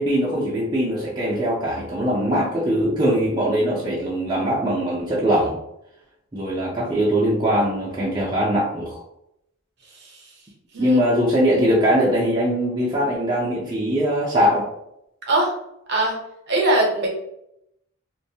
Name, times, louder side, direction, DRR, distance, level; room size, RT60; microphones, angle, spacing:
voice 1, 0.0-5.6 6.3-9.0 10.8-14.7, equal, 20° right, -6 dB, 0.4 m, -21 dB
voice 2, 15.2-15.5 15.9-16.2 16.5-17.1, right 1 dB, 50° right, -1 dB, 0.7 m, -21 dB
2.6 x 2.2 x 2.6 m, 0.80 s
head